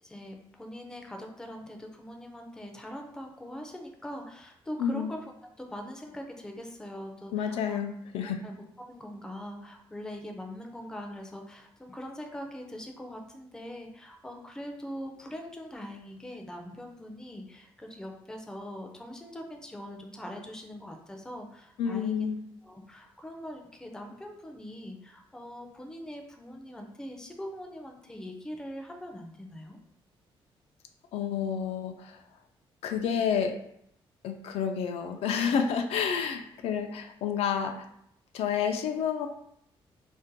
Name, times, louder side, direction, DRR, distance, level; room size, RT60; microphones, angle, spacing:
voice 1, 0.0-5.3 5.6-7.8 8.2-22.3 22.6-29.8, equal, 5° left, 3 dB, 0.3 m, -42 dB
voice 2, 4.8-5.1 7.3-8.4 21.8-22.4 31.1-32.2 32.8-33.6 34.2-37.9 38.3-39.3, left 7 dB, 90° left, 6 dB, 0.4 m, -29 dB
2.5 x 2.1 x 3.9 m, 0.74 s
cardioid pair, 160°, 10 cm